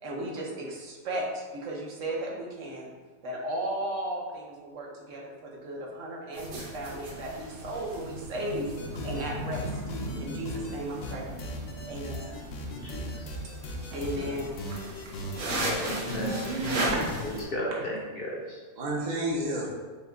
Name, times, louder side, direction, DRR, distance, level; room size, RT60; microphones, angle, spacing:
voice 1, 0.0-2.9 3.2-8.7 9.0-9.7 10.2-11.3 11.9-12.3 13.9-14.6, right 1 dB, 65° right, -2 dB, 1.1 m, -35 dB
sound 1, 6.3-17.4, right 1 dB, 85° right, 1.3 m, -36 dB
sound 2, 8.8-9.2 9.5-10.7 11.0-17.5, left 2 dB, 70° left, 1.0 m, -38 dB
voice 2, 12.7-13.3 14.1-14.4 15.8-16.4 17.2-18.6, equal, 55° left, -3 dB, 0.7 m, -35 dB
voice 3, 15.4-17.1 18.8-19.7, right 2 dB, 45° right, -4 dB, 0.6 m, -32 dB
5.4 x 2.2 x 3.8 m, 1.4 s
omnidirectional pair, 1.5 m